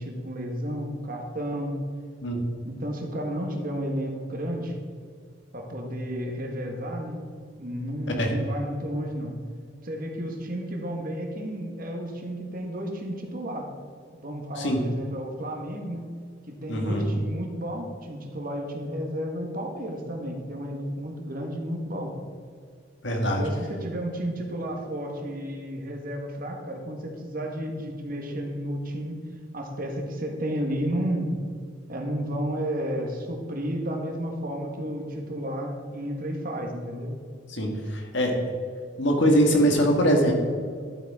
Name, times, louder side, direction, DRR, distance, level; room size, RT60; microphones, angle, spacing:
voice 1, 0.0-1.8 2.6-4.8 5.5-7.2 7.6-9.3 9.8-13.7 14.1-16.0 16.5-22.2 23.2-29.2 29.5-31.3 31.9-37.2, equal, 45° right, 2 dB, 1.4 m, -32 dB
voice 2, 14.6-14.9 16.7-17.1 23.0-23.4 37.5-38.4 39.0-40.3, equal, 65° left, 2 dB, 1.8 m, -22 dB
12.0 x 8.5 x 3.6 m, 2.1 s
head